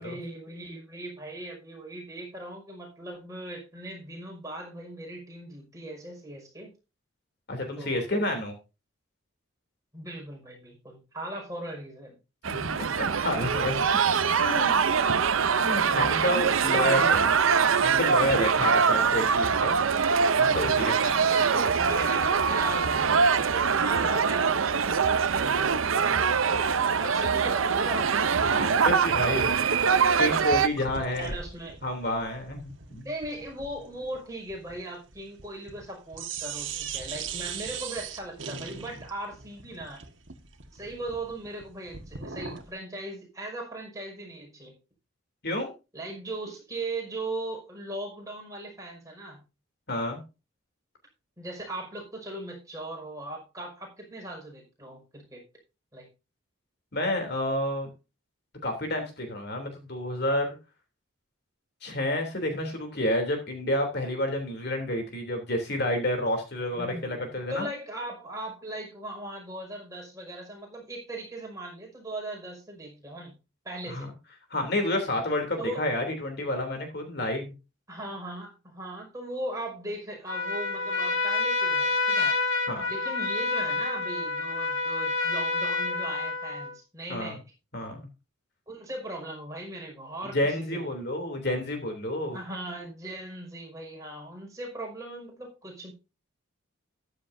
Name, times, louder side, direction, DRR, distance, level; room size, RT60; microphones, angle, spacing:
voice 1, 0.0-6.7 7.8-8.0 9.9-12.1 12.4-12.5 16.6-17.3 21.3-24.6 25.2-26.2 27.0-28.1 31.1-31.8 33.0-40.0 40.7-44.7 45.9-49.4 51.4-55.4 55.9-56.1 66.7-73.4 73.6-74.1 75.6-75.8 77.9-82.4 82.9-87.4 88.7-91.0 92.3-95.9, right 1 dB, 15° right, 0 dB, 5.6 m, -38 dB
voice 2, 7.5-8.5 12.5-13.7 14.4-14.9 15.6-17.3 17.8-19.8 20.4-21.3 26.9-27.0 28.4-29.6 30.2-31.3 31.8-33.1 45.4-45.7 49.9-50.2 56.9-57.9 58.6-60.5 61.8-67.7 73.9-74.1 74.5-77.5 82.7-82.8 87.1-87.4 87.7-88.1 90.3-92.4, left 1 dB, 50° left, 4 dB, 3.2 m, -29 dB
sound 1, 12.4-30.7, right 6 dB, 85° right, 0.8 m, -23 dB
Bathroom Sink Drain, 30.7-35.9 36.1-42.7, right 6 dB, 65° right, 1.7 m, -40 dB
Trumpet, 80.3-86.7, left 3 dB, 75° left, 2.2 m, -28 dB
14.0 x 11.5 x 2.7 m, 0.29 s
head